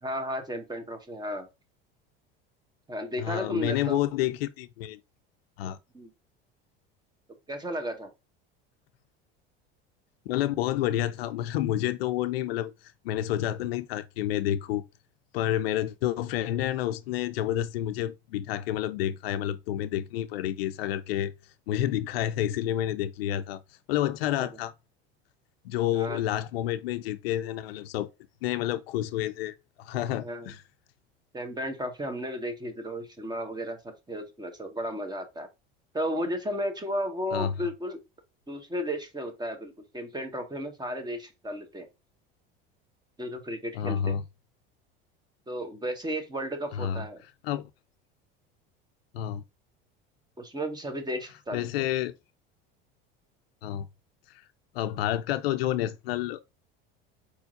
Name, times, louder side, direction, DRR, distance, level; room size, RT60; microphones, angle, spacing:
voice 1, 0.0-1.5 2.9-4.0 5.9-6.1 7.5-8.1 24.4-24.5 25.9-26.2 30.2-30.5 31.3-35.5 35.9-38.0 38.5-41.9 43.2-44.2 45.5-47.2 50.4-51.7, equal, 15° right, 1.5 m, -34 dB
voice 2, 3.2-5.0 5.6-5.8 10.3-14.8 15.3-21.3 21.7-23.6 23.9-24.7 25.6-28.1 28.4-30.6 37.3-37.5 43.7-44.2 46.7-47.0 47.4-47.7 49.1-49.4 51.5-52.1 53.6-53.9 54.3-54.4 54.7-56.4, left 12 dB, 85° left, 0.5 m, -29 dB
4.5 x 4.4 x 2.5 m
supercardioid pair, 95°, 29 cm